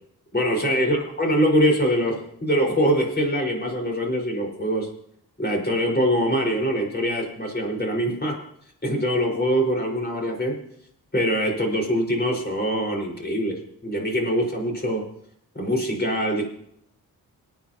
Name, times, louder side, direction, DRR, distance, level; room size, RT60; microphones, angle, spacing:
voice 1, 0.3-4.9 5.4-8.4 8.8-10.6 11.1-15.1 15.5-16.4, equal, 25° left, 1 dB, 5.0 m, -23 dB
25.5 x 9.3 x 2.9 m, 0.70 s
cardioid pair, 65°, 39 cm